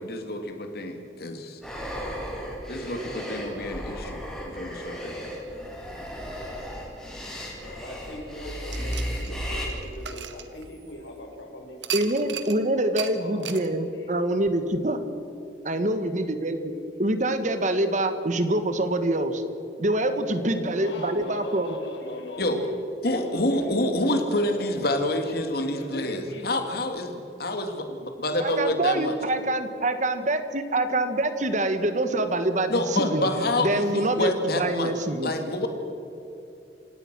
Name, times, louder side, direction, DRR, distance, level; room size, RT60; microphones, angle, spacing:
voice 1, 0.0-1.6 2.7-4.2 4.5-5.1 22.4-22.6 23.0-29.1 32.7-34.9 35.2-35.7, left 1 dB, 60° left, 5 dB, 2.5 m, -27 dB
sound 1, 1.6-9.7, equal, 5° left, 4.4 m, -35 dB
voice 2, 7.5-12.1 13.0-13.6 13.9-14.1 20.4-22.7 23.0-23.7 24.3-24.7 25.6-26.5 35.1-35.2, left 1 dB, 85° left, 2 dB, 5.0 m, -40 dB
sound 2, 8.7-11.1 11.8-12.6 13.0-13.1 13.4-13.7, right 9 dB, 85° right, 1.6 m, -35 dB
voice 3, 11.9-15.0 15.6-16.7 17.0-19.4 19.8-21.8 28.4-33.3 33.6-35.3, right 1 dB, 45° right, 9 dB, 1.6 m, -25 dB
28.5 x 17.0 x 6.2 m, 2.9 s
head